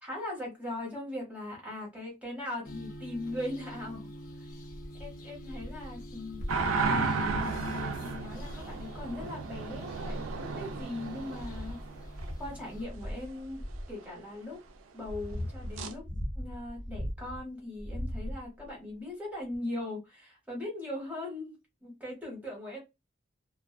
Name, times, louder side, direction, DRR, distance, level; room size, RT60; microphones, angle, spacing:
voice 1, 0.0-4.1 4.3-4.5 5.0-6.4 6.9-11.8 12.4-14.6 14.9-16.1 16.4-22.8, left 1 dB, 5° right, 1.2 m, -39 dB
sound 1, 2.6-12.9, equal, 45° left, 0.6 m, -44 dB
sound 2, 5.0-5.3 5.9-6.0 6.4-6.7 7.1-7.6 9.0-9.1 9.9-10.6 11.1-13.9 14.7-17.4 17.8-18.7 19.5-19.6, equal, 25° left, 0.9 m, -39 dB
sound 3, 6.5-12.3 15.8-15.9, right 4 dB, 80° right, 0.4 m, -33 dB
2.4 x 2.2 x 2.2 m
head